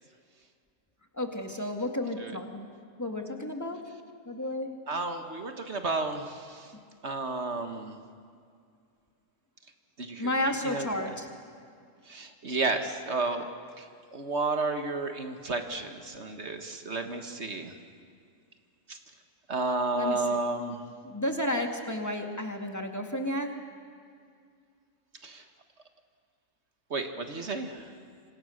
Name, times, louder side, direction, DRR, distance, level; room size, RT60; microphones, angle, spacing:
voice 1, 1.1-2.7 3.0-3.8 4.3-4.7 10.2-11.3 19.9-20.4 21.0-23.5, left 1 dB, 10° left, 3 dB, 2.0 m, -32 dB
voice 2, 4.9-6.7 7.0-8.0 10.0-10.3 10.6-11.1 12.1-13.5 13.8-13.9 14.1-17.7 18.9-19.0 19.5-20.8 25.2-25.4 26.9-27.9, right 3 dB, 50° right, 6 dB, 1.7 m, -32 dB
27.0 x 26.0 x 6.5 m, 2.2 s
omnidirectional pair, 1.5 m